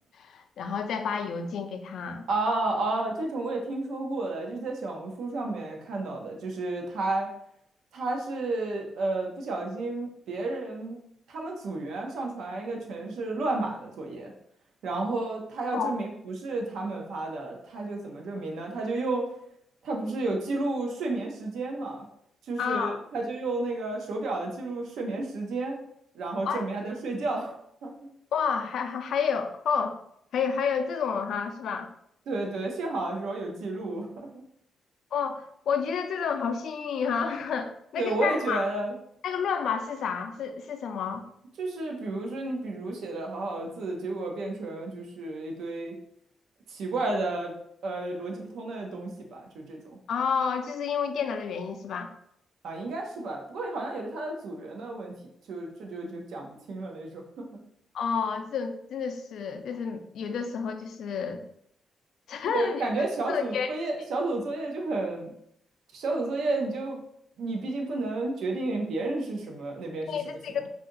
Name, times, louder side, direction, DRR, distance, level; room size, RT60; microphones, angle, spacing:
voice 1, 0.2-2.3 15.7-15.9 22.6-23.0 26.4-26.6 28.3-30.0 30.3-31.9 35.1-38.7 39.2-41.2 50.1-52.1 57.9-61.4 62.3-62.9 63.3-63.7 70.1-70.7, left 6 dB, 70° left, 7 dB, 0.3 m, -30 dB
voice 2, 2.3-7.3 7.9-11.0 11.3-14.3 14.8-19.3 19.8-22.1 22.5-25.8 26.1-27.5 27.8-27.9 32.3-34.4 38.0-38.9 41.6-45.9 46.7-47.5 47.8-50.0 52.6-55.2 55.5-57.5 62.5-65.3 65.9-67.0 67.4-70.2 70.5-70.7, right 2 dB, 80° right, 1 dB, 0.7 m, -31 dB
2.7 x 2.4 x 3.8 m, 0.72 s
cardioid pair, 150°, 0 cm